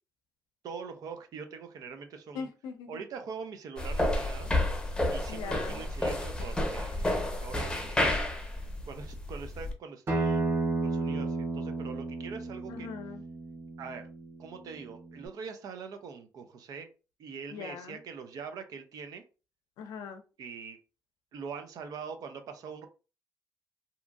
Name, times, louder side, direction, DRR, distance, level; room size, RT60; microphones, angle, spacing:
voice 1, 0.6-2.5 2.9-4.5 5.1-8.2 8.5-10.4 10.8-12.9 13.8-14.0 14.4-16.9 17.2-19.2 20.4-20.8 21.3-22.9, right 5 dB, 65° right, 6 dB, 0.6 m, -43 dB
voice 2, 2.3-3.0 5.3-5.8 12.7-13.2 17.5-18.0 19.8-20.2, left 6 dB, 85° left, 7 dB, 0.5 m, -41 dB
sound 1, 3.8-9.7, left 1 dB, 10° left, 0.7 m, -30 dB
Acoustic guitar, 10.1-15.3, right 3 dB, 40° right, 1.1 m, -33 dB
2.8 x 2.5 x 2.4 m, 0.33 s
cardioid pair, 85°, 7 cm